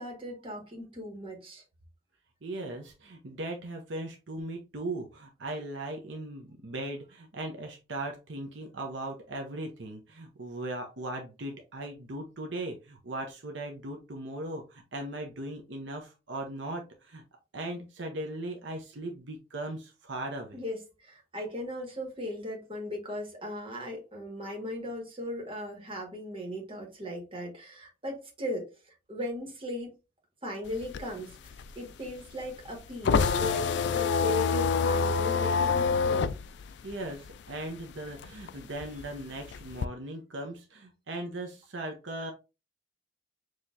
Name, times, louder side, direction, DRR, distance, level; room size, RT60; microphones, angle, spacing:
voice 1, 0.0-1.6 20.5-29.9 30.4-36.3, left 1 dB, 30° right, 1.8 m, -38 dB
voice 2, 2.4-17.2 17.5-20.6 36.8-42.3, right 1 dB, 70° right, 0.8 m, -38 dB
sound 1, 30.7-37.8 38.1-39.9, left 5 dB, 60° left, 0.4 m, -27 dB
6.4 x 3.0 x 2.7 m
head